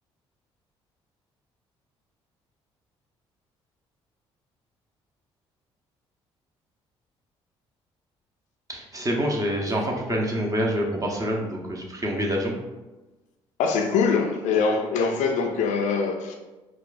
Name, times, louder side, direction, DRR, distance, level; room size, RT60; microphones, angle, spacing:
voice 1, 8.7-12.5, equal, 25° right, -1 dB, 0.9 m, -26 dB
voice 2, 13.6-16.3, left 5 dB, 65° left, 4 dB, 0.5 m, -23 dB
4.5 x 2.3 x 2.5 m, 1.1 s
hypercardioid pair, 50°, 14 cm